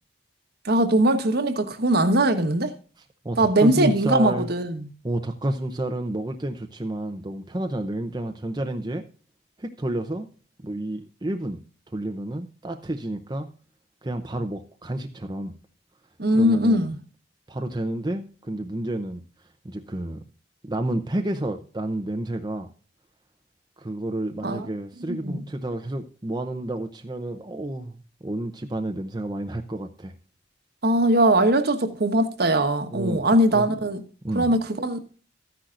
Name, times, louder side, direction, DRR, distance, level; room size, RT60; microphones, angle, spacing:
voice 1, 0.6-2.7 3.4-4.9 16.2-17.0 24.4-24.7 25.1-25.4 30.8-34.0 34.3-35.1, right 1 dB, 60° right, 1.2 m, -21 dB
voice 2, 3.2-4.5 5.0-9.0 9.6-10.3 10.6-11.6 11.9-13.5 14.0-15.5 16.3-16.9 17.5-19.2 19.6-20.2 20.6-22.7 23.8-30.1 32.9-33.2 33.5-33.7 34.2-34.5, right 1 dB, 25° right, 0.7 m, -30 dB
13.0 x 10.0 x 2.5 m
head